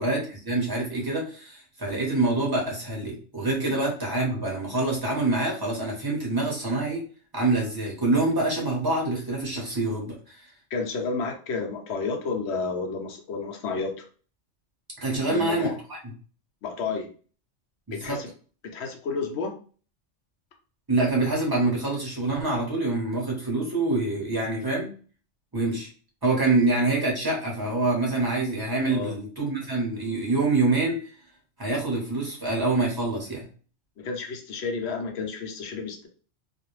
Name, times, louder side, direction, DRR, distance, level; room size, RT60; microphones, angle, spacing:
voice 1, 0.0-7.0 7.3-10.5 15.0-16.0 17.9-18.2 20.9-24.9 25.5-25.9 26.2-31.1 31.6-33.5, right 2 dB, 20° right, -2 dB, 0.8 m, -26 dB
voice 2, 10.7-14.1 15.1-15.7 16.6-17.1 17.9-18.3 18.6-19.5 28.9-29.2 34.0-36.1, left 4 dB, 65° left, 3 dB, 0.8 m, -31 dB
2.4 x 2.1 x 3.0 m, 0.40 s
omnidirectional pair, 1.3 m